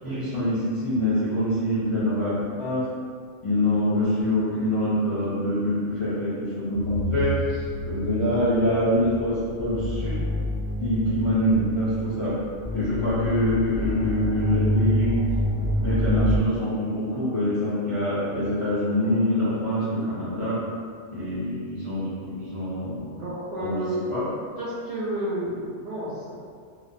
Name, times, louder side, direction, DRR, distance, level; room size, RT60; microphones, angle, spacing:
voice 1, 0.0-2.9 3.4-7.4 7.8-10.2 10.8-12.4 12.7-15.2 15.8-20.6 21.1-23.1 23.6-23.8 24.1-24.3, left 1 dB, 40° left, -12 dB, 0.5 m, -25 dB
sound 1, 6.7-16.4, equal, 50° right, 0.7 m, -28 dB
voice 2, 23.1-24.0 24.6-26.3, right 1 dB, 75° right, -11 dB, 1.1 m, -31 dB
2.7 x 2.0 x 2.5 m, 2.1 s
omnidirectional pair, 1.2 m